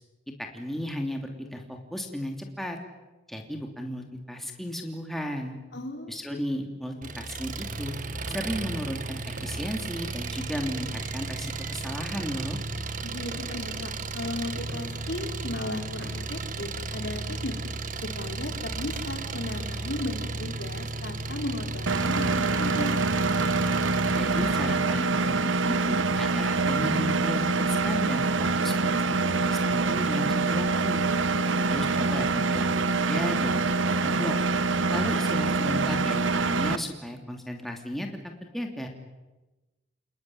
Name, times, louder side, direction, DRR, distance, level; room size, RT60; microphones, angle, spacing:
voice 1, 0.4-2.8 3.3-5.6 6.1-7.9 8.3-12.6 24.1-29.0 29.5-31.1 31.7-33.5 33.9-34.3 34.9-38.1 38.4-38.9, equal, ahead, 2 dB, 2.9 m, -34 dB
voice 2, 5.7-6.2 13.0-17.5 18.0-23.1 31.3-31.6, left 1 dB, 60° left, 4 dB, 4.3 m, -36 dB
Engine, 7.0-24.5, right 3 dB, 40° right, 1.6 m, -34 dB
sound 1, 7.7-17.4, right 2 dB, 65° right, 6.3 m, -50 dB
Engine 2, 21.9-36.8, right 3 dB, 80° right, 1.1 m, -25 dB
29.5 x 19.5 x 9.8 m, 1.1 s
head